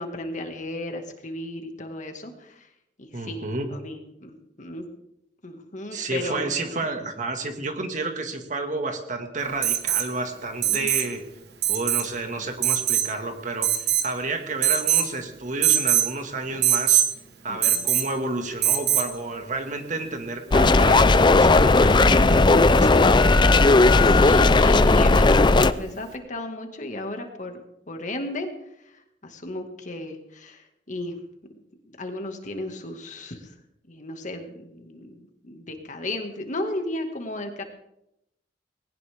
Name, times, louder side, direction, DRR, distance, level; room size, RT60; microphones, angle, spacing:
voice 1, 0.0-2.7 3.0-3.4 3.7-4.9 5.4-6.9 10.6-10.9 17.5-17.9 23.3-28.5 28.9-29.0 29.2-31.2 31.8-33.5 33.9-37.6, left 1 dB, 45° left, 5 dB, 2.1 m, -35 dB
voice 2, 3.1-3.7 5.9-11.2 11.7-17.0 17.4-22.9, right 2 dB, 45° right, 5 dB, 2.0 m, -31 dB
Alarm, 9.6-10.1 10.6-11.1 11.6-12.1 12.6-13.1 13.6-14.1 14.6-15.1 15.6-16.1 16.6-17.1 17.6-18.1 18.6-19.1 20.9-21.0, right 12 dB, 65° right, 1.4 m, -22 dB
sound 1, 20.5-25.7, left 3 dB, 25° left, 0.5 m, -16 dB
20.0 x 18.0 x 3.6 m, 0.83 s
head